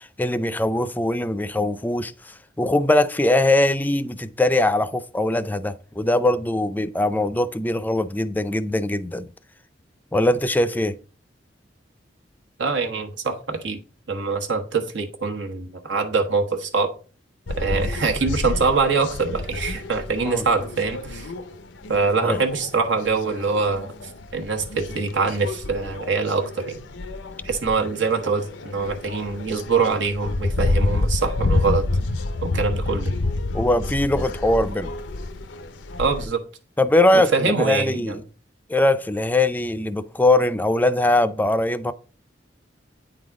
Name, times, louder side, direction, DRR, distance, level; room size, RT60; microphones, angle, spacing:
voice 1, 0.0-9.3 10.1-11.0 20.2-20.5 22.2-22.4 33.5-34.9 36.8-38.2 38.7-41.9, left 1 dB, 10° left, 0.4 m, -21 dB
voice 2, 12.6-13.8 14.1-16.9 17.6-21.3 21.9-23.9 24.3-26.7 27.4-31.8 32.4-33.1 36.0-36.4 37.1-38.2, right 4 dB, 85° right, 1.2 m, -24 dB
sound 1, 17.5-36.3, left 2 dB, 85° left, 0.6 m, -29 dB
9.0 x 4.0 x 4.8 m
head